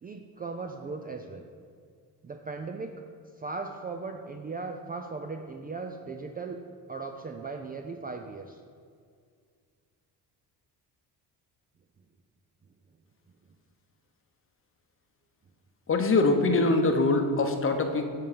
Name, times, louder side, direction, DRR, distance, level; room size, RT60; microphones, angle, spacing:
voice 1, 0.0-1.5 2.2-3.0 3.4-6.6 6.9-8.6, right 4 dB, 25° right, 4 dB, 0.4 m, -38 dB
voice 2, 15.9-18.1, left 3 dB, 30° left, 5 dB, 0.8 m, -23 dB
8.0 x 3.8 x 6.8 m, 2.1 s
cardioid pair, 105°, 40 cm